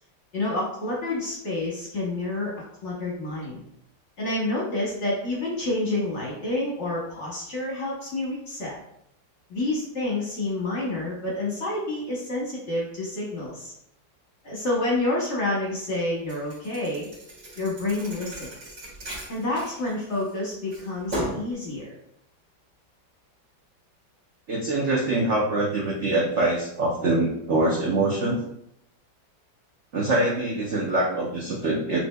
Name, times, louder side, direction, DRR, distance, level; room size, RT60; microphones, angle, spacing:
voice 1, 0.3-2.5 2.8-3.6 4.2-8.8 9.5-13.7 14.4-17.1 17.6-18.5 19.3-21.9, left 2 dB, 45° left, -3 dB, 1.0 m, -28 dB
Thump thud, 16.3-20.3 20.7-21.5, right 1 dB, 45° right, 1.9 m, -36 dB
voice 2, 24.5-28.4 29.9-32.0, right 2 dB, 70° right, -3 dB, 0.6 m, -24 dB
6.0 x 3.2 x 2.2 m, 0.76 s
omnidirectional pair, 2.1 m